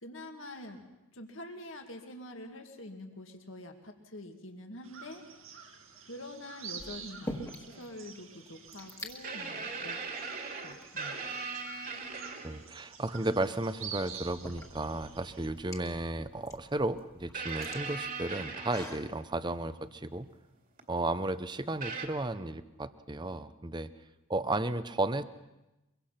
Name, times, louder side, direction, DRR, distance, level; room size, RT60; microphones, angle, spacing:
voice 1, 0.0-5.2 6.1-10.0 10.6-11.2, left 1 dB, 65° left, 4 dB, 2.2 m, -46 dB
sound 1, 4.8-15.5, right 7 dB, 75° right, 2.2 m, -48 dB
sound 2, 5.6-6.0 6.8-7.9 8.1-8.2 8.5-9.1 10.0-10.1 10.7-11.6 13.3-13.4 14.1-19.1, left 1 dB, 15° left, 1.7 m, -45 dB
sound 3, 7.7-7.8 9.2-12.7 14.0-14.1 15.9-16.0 17.3-19.4 20.8-20.9 21.8-22.1, right 4 dB, 40° right, 2.3 m, -39 dB
voice 2, 12.4-20.3 20.9-23.9 24.3-25.2, right 2 dB, 20° right, 13 dB, 0.7 m, -34 dB
24.0 x 23.0 x 5.8 m, 0.99 s
head